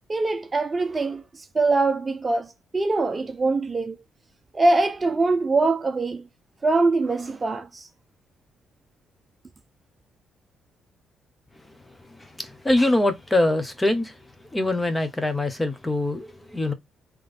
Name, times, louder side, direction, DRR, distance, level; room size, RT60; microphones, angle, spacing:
voice 1, 0.1-4.0 4.5-6.3 6.6-7.9, right 3 dB, 25° right, 0.6 m, -23 dB
voice 2, 12.4-14.1 14.5-16.7, left 2 dB, 15° left, 1.1 m, -23 dB
3.8 x 3.2 x 3.5 m
cardioid pair, 90°, 0 cm